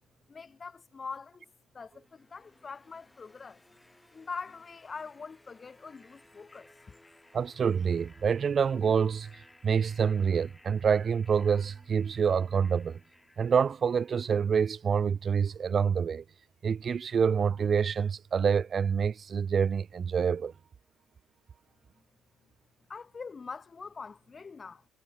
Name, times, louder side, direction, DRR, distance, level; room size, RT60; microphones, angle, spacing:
voice 1, 0.3-1.5 1.7-3.6 4.1-6.7 22.9-24.9, left 5 dB, 35° left, 1.7 m, -43 dB
sound 1, 1.9-14.8, left 1 dB, 10° left, 5.5 m, -60 dB
voice 2, 7.3-9.3 9.6-13.0 13.4-16.2 16.6-20.5, right 6 dB, 45° right, 0.5 m, -27 dB
supercardioid pair, 70°, 0 cm